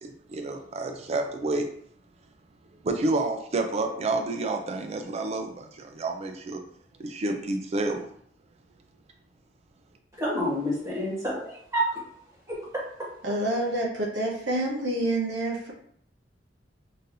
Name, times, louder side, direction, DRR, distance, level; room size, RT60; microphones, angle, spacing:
voice 1, 0.0-1.7 2.8-6.6 7.0-8.0, right 2 dB, 35° right, 4 dB, 0.4 m, -29 dB
voice 2, 10.2-11.9 12.5-13.1, equal, 15° right, -6 dB, 1.5 m, -29 dB
voice 3, 13.2-15.7, right 1 dB, 80° right, -1 dB, 1.0 m, -27 dB
5.4 x 2.7 x 2.6 m, 0.64 s
head